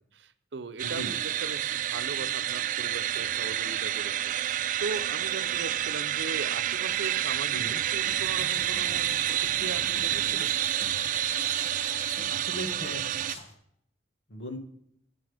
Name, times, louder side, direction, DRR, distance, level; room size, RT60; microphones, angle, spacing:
voice 1, 0.1-4.1 4.5-10.5, right 4 dB, 70° right, 11 dB, 0.7 m, -39 dB
voice 2, 0.8-1.1 7.5-7.8 12.3-13.1 14.3-14.6, equal, 70° left, 5 dB, 1.7 m, -38 dB
sound 1, 0.8-13.4, right 12 dB, 45° right, 0.3 m, -29 dB
sound 2, 8.1-13.5, left 2 dB, 35° left, 1.6 m, -45 dB
11.5 x 9.1 x 3.4 m, 0.70 s
head